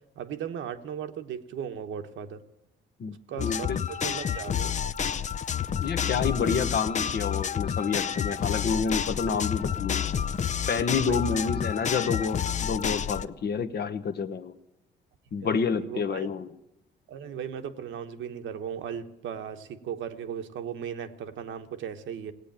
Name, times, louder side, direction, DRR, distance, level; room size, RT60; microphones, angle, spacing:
voice 1, 0.2-2.4 3.1-4.8 11.1-11.4 15.4-16.3 17.1-22.3, right 8 dB, 75° right, 7 dB, 1.1 m, -37 dB
voice 2, 3.0-3.8 5.8-10.0 10.7-14.5 15.3-16.5, left 5 dB, 55° left, 10 dB, 1.0 m, -29 dB
sound 1, 3.4-13.2, left 8 dB, 40° left, 0.5 m, -29 dB
18.0 x 8.4 x 8.8 m, 0.92 s
cardioid pair, 90°, 20 cm